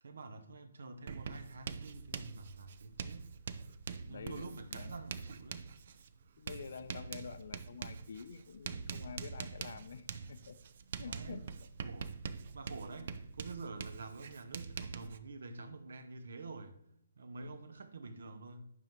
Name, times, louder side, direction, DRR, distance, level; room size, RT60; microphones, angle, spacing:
voice 1, 0.0-3.3 4.1-5.7 11.0-11.5 11.8-16.7 17.2-18.7, right 3 dB, 80° right, 0.9 m, -48 dB
Writing, 1.1-15.2, right 6 dB, 55° right, 0.4 m, -45 dB
voice 2, 4.0-5.0 6.4-10.6 11.0-11.4 17.4-17.6, left 6 dB, 65° left, 0.6 m, -48 dB
11.0 x 3.8 x 3.0 m
hypercardioid pair, 155°, 0 cm